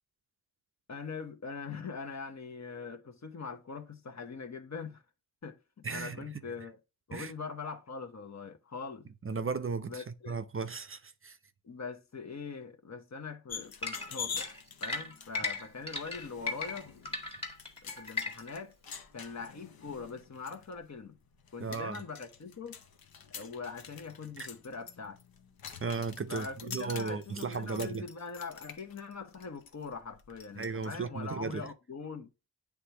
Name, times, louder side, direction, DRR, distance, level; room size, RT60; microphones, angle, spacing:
voice 1, 0.9-5.0 5.4-6.8 7.1-9.1 9.9-10.4 11.6-14.5 14.8-16.9 17.8-18.8 19.1-21.2 21.5-22.8 23.3-25.2 26.3-32.3, left 5 dB, 50° left, 1.0 m, -42 dB
voice 2, 5.8-6.2 7.1-7.3 9.2-11.4 21.6-22.0 25.8-28.1 30.6-31.7, right 4 dB, 35° right, 0.5 m, -35 dB
sound 1, 13.5-30.9, left 6 dB, 75° left, 0.9 m, -47 dB
sound 2, 13.8-18.6, left 3 dB, 15° left, 1.5 m, -36 dB
9.6 x 3.5 x 2.9 m
wide cardioid pair, 95°, 36 cm